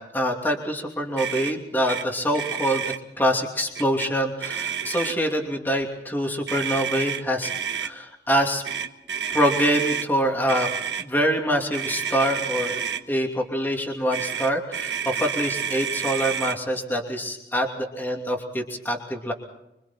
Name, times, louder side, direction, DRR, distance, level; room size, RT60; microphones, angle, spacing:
voice 1, 0.0-7.5 7.8-8.6 9.3-10.7 11.0-19.3, equal, 10° left, 1 dB, 2.8 m, -25 dB
Motor vehicle (road), 1.2-1.5 1.9-2.0 2.3-3.0 3.8-4.1 4.4-5.3 6.5-7.9 8.6-10.1 10.5-11.1 11.7-13.0 14.1-16.6, right 8 dB, 80° right, 1.4 m, -29 dB
27.0 x 24.5 x 4.4 m, 0.87 s
head